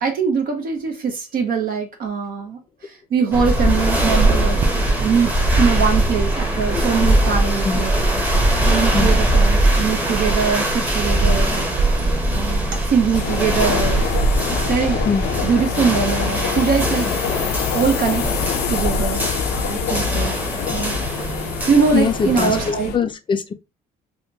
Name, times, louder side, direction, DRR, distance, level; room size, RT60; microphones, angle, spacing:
voice 1, 0.0-4.6 5.0-7.9 8.6-11.7 12.3-14.1 14.5-15.0 15.4-17.5 17.7-18.2 18.7-19.3 19.7-20.3 20.7-20.9 21.7-23.0, right 6 dB, 60° right, 0.8 m, -22 dB
sound 1, 3.3-22.7, right 1 dB, 10° right, 0.9 m, -22 dB
sound 2, 4.2-15.0, right 3 dB, 35° right, 0.5 m, -24 dB
sound 3, 13.1-23.0, left 7 dB, 85° left, 0.5 m, -25 dB
voice 2, 21.9-22.6 22.9-23.5, left 6 dB, 30° left, 0.4 m, -21 dB
3.6 x 2.2 x 2.7 m
cardioid pair, 110°, 17 cm